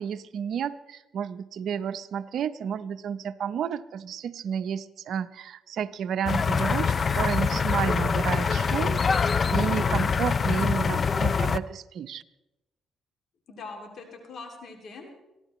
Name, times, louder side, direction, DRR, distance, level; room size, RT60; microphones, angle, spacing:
voice 1, 0.0-12.2, right 8 dB, 70° right, 11 dB, 0.6 m, -31 dB
sound 1, 6.3-11.6, left 5 dB, 40° left, 0.4 m, -24 dB
voice 2, 9.6-10.0 13.5-15.1, left 3 dB, 60° left, 2 dB, 2.5 m, -42 dB
23.5 x 15.5 x 3.1 m, 0.99 s
cardioid pair, 90°, 0 cm